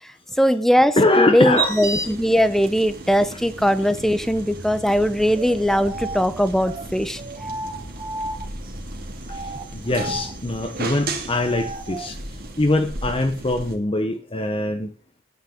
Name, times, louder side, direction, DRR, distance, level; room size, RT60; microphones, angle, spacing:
voice 1, 0.4-7.2, equal, ahead, 12 dB, 0.7 m, -20 dB
voice 2, 1.0-1.8 3.6-3.7 9.3-14.9, left 2 dB, 25° left, 5 dB, 0.9 m, -23 dB
sound 1, 1.6-13.8, right 2 dB, 45° right, 2.4 m, -34 dB
sound 2, 5.3-8.7 9.2-12.1, right 2 dB, 25° right, 1.2 m, -35 dB
9.4 x 9.4 x 6.5 m, 0.41 s
head